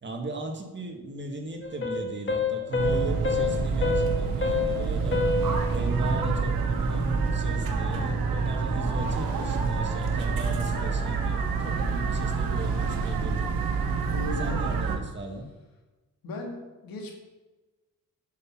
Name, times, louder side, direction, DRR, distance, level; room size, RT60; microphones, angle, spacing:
voice 1, 0.0-5.2 5.7-13.5 14.4-15.5, right 2 dB, 30° right, 3 dB, 1.9 m, -36 dB
sound 1, 1.6-6.5, left 4 dB, 35° left, 1.7 m, -29 dB
sound 2, 2.8-15.0, right 4 dB, 90° right, 1.4 m, -27 dB
voice 2, 14.1-14.6 16.2-17.2, left 3 dB, 90° left, 2 dB, 2.2 m, -36 dB
10.5 x 6.0 x 6.0 m, 1.2 s
cardioid pair, 95°, 34 cm